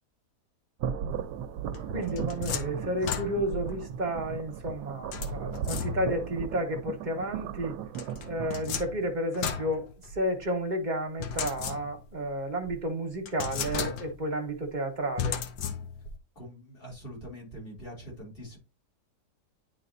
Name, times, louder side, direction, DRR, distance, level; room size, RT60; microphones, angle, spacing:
sound 1, 0.8-8.6, right 7 dB, 85° right, 1.2 m, -36 dB
sound 2, 1.7-3.7 5.1-6.3 7.9-10.5 11.2-12.2 12.7-12.8 13.3-14.3 15.2-16.2, left 7 dB, 85° left, 1.4 m, -35 dB
voice 1, 1.9-7.7 8.3-9.9 10.1-15.4, right 1 dB, 30° right, 1.3 m, -31 dB
voice 2, 16.3-18.6, equal, 35° left, 3.2 m, -43 dB
10.0 x 4.1 x 2.6 m
omnidirectional pair, 1.8 m